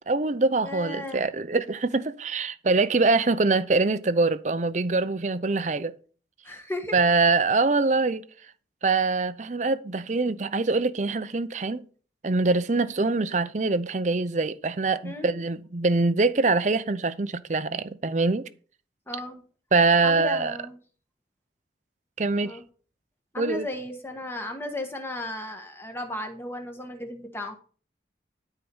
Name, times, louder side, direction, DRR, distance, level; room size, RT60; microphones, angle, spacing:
voice 1, 0.1-5.9 6.9-8.2 8.8-11.9 12.2-18.5 19.7-20.5 22.2-22.6 23.4-23.7, right 3 dB, 40° right, 0.6 m, -24 dB
voice 2, 0.6-1.2 6.4-6.9 15.0-15.4 19.1-19.4 20.0-20.8 22.4-22.6 23.3-27.5, left 1 dB, 15° left, 1.4 m, -35 dB
12.5 x 4.6 x 5.5 m
head